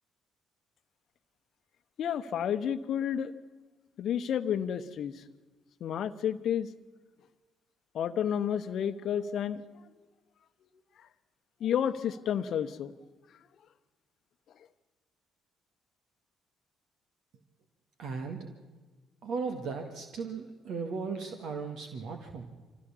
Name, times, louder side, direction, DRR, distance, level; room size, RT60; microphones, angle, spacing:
voice 1, 2.0-3.3 4.0-5.2 5.8-6.7 7.9-9.6 11.6-12.9, left 9 dB, 55° left, 12 dB, 1.0 m, -30 dB
voice 2, 18.0-18.5 19.2-22.4, right 5 dB, 60° right, 5 dB, 1.8 m, -36 dB
24.5 x 16.0 x 7.2 m, 1.3 s
figure-of-eight pair, 45°, 0 cm